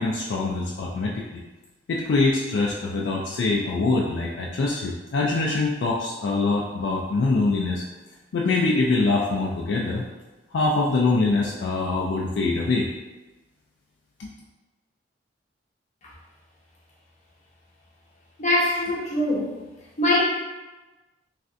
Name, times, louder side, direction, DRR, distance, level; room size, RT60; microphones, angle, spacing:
voice 1, 0.0-1.4 1.9-7.8 8.3-10.0 10.5-12.9 14.2-14.3, left 3 dB, 70° left, -2 dB, 0.3 m, -24 dB
voice 2, 18.4-19.5 20.0-20.2, left 1 dB, 40° left, -4 dB, 0.8 m, -22 dB
3.2 x 2.5 x 2.5 m, 1.1 s
head